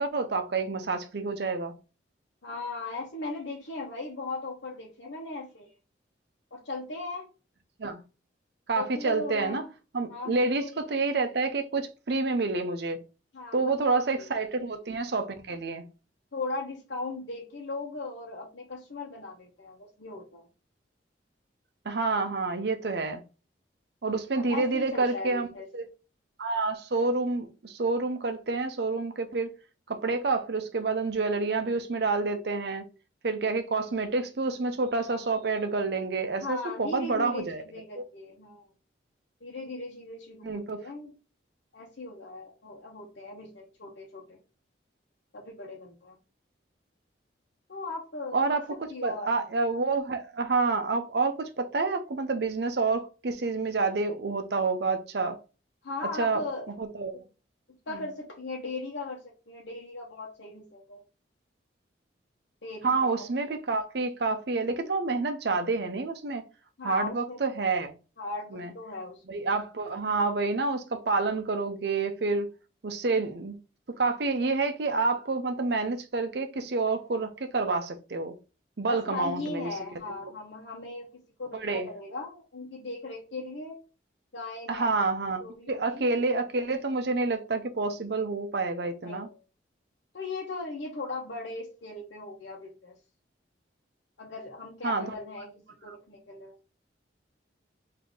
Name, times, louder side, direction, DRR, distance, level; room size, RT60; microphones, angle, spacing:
voice 1, 0.0-1.7 7.8-8.0 8.7-9.6 9.9-13.0 13.5-15.8 21.8-23.2 24.0-25.5 25.7-25.9 26.4-29.5 29.9-32.8 33.2-37.6 38.0-38.1 40.4-40.8 48.3-48.6 49.0-55.4 56.2-56.4 56.8-57.2 57.9-58.1 62.8-66.5 66.8-68.0 68.5-68.7 69.3-72.5 72.8-73.6 73.9-78.3 78.8-79.7 80.2-80.3 81.5-81.9 84.7-89.3 94.8-95.1 95.9-96.0, right 3 dB, 60° right, 0.6 m, -28 dB
voice 2, 2.4-5.7 6.5-7.3 8.8-9.7 10.1-10.8 13.3-14.3 16.3-20.5 24.3-25.7 36.4-38.7 39.4-41.1 41.7-44.4 45.3-46.2 47.7-49.3 55.8-56.7 57.1-57.2 57.9-61.0 62.6-63.3 66.8-67.4 68.2-69.5 78.9-81.1 81.4-83.8 84.3-84.9 85.4-86.1 89.0-89.4 90.1-93.0 94.2-96.6, left 3 dB, 70° left, 1.0 m, -38 dB
3.7 x 2.8 x 3.7 m
head